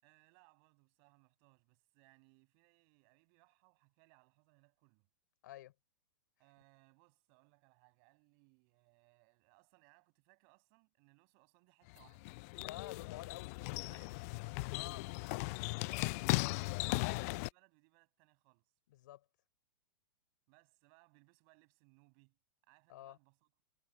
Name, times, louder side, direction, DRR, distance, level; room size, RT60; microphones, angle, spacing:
voice 1, 0.0-5.1 6.4-12.3 13.8-14.5 15.1-16.3 16.7-18.7 20.5-23.6, right 40 dB or more, 45° right, 7.9 m, -69 dB
sound 1, 11.9-17.5, left 27 dB, 45° left, 0.4 m, -37 dB
voice 2, 12.6-13.6 14.7-15.2 18.9-19.2 22.9-23.2, left 14 dB, 60° left, 4.7 m, -50 dB
hypercardioid pair, 105°, 11 cm